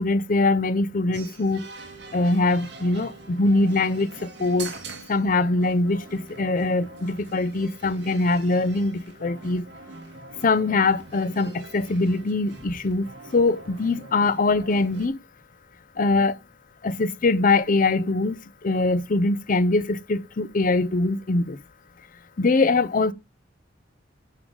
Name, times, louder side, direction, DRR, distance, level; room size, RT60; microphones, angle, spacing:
voice 1, 0.0-1.7 2.1-4.8 5.1-9.6 10.4-13.1 13.3-15.2 16.0-16.4 16.8-21.6 22.4-23.1, left 3 dB, 45° left, 0.6 m, -22 dB
sound 1, 1.1-15.1, right 3 dB, 65° right, 2.0 m, -43 dB
9.6 x 6.7 x 3.8 m
head